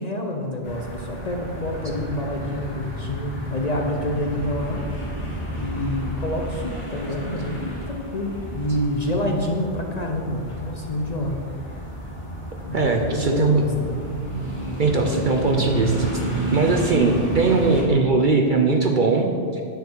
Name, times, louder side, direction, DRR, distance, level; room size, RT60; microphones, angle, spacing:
voice 1, 0.0-4.8 5.5-11.4 12.7-13.7, left 1 dB, 40° left, 1 dB, 0.7 m, -27 dB
sound 1, 0.6-17.8, right 1 dB, 25° left, 2.3 m, -30 dB
voice 2, 12.7-13.6 14.8-16.1 16.5-19.6, right 3 dB, 50° right, 3 dB, 0.7 m, -20 dB
9.1 x 7.4 x 4.6 m, 2.2 s
omnidirectional pair, 1.3 m